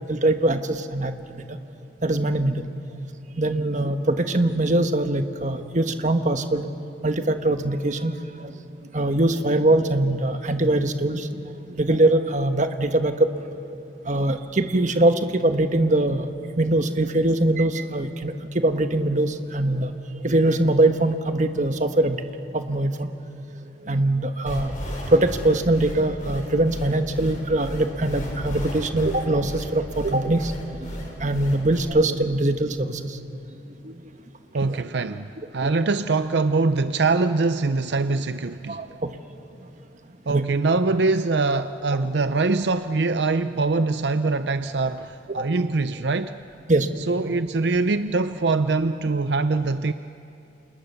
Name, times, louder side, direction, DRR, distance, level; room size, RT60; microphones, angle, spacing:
voice 1, 0.1-1.6 2.0-2.6 3.4-6.7 7.0-8.5 8.9-11.4 11.7-13.3 14.0-16.3 16.6-19.9 20.2-22.2 22.5-23.1 23.8-24.7 25.1-30.5 31.2-33.2 33.8-34.0 34.6-34.8 35.6-35.7 38.7-39.1 40.3-40.4 45.4-45.5 46.7-47.0, right 1 dB, 45° right, 7 dB, 1.3 m, -22 dB
sound 1, 24.5-31.8, equal, 50° left, 6.1 m, -33 dB
voice 2, 34.5-38.8 40.3-46.3 47.1-49.9, right 3 dB, 75° right, 11 dB, 0.6 m, -23 dB
30.0 x 27.5 x 6.9 m, 2.7 s
head